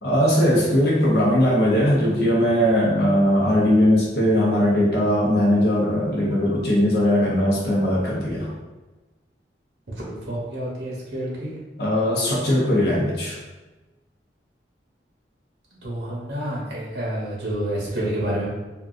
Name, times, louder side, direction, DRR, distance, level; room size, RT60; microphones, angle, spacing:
voice 1, 0.0-8.5 11.8-13.4, equal, 60° left, -5 dB, 0.7 m, -19 dB
voice 2, 10.0-11.5 15.7-18.5, right 1 dB, 75° right, -5 dB, 0.9 m, -29 dB
3.5 x 2.3 x 2.5 m, 1.2 s
head